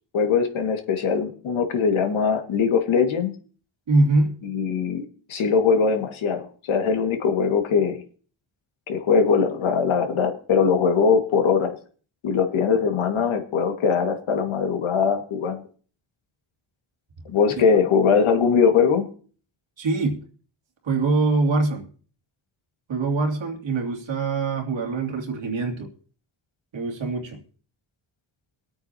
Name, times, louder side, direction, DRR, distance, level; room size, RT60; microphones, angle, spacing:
voice 1, 0.1-3.3 4.4-8.0 8.9-11.7 12.2-15.6 17.3-19.1, left 6 dB, 80° left, 1.9 m, -21 dB
voice 2, 3.9-4.4 19.8-20.3 20.8-21.9 22.9-25.9 26.7-27.4, right 3 dB, 70° right, 2.7 m, -23 dB
22.5 x 8.8 x 2.8 m
cardioid pair, 75°, 47 cm